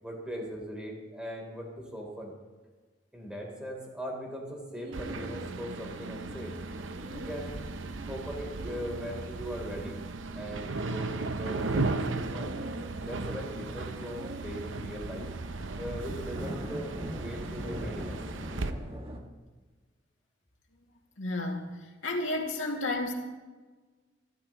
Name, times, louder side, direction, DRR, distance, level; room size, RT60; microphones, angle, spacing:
voice 1, 0.0-2.4 3.1-6.5 7.0-7.7 8.1-10.0 10.3-12.5 13.0-15.3 15.7-18.2, equal, 5° right, -1 dB, 3.8 m, -40 dB
Bird, 4.7-14.4, right 2 dB, 55° right, 2.0 m, -47 dB
sound 1, 4.9-18.7, right 3 dB, 80° right, 0.8 m, -36 dB
sound 2, 14.8-19.2, equal, 30° right, 2.0 m, -42 dB
voice 2, 21.2-21.7 22.0-23.1, left 2 dB, 80° left, 1 dB, 2.5 m, -31 dB
27.5 x 12.5 x 3.2 m, 1.3 s
head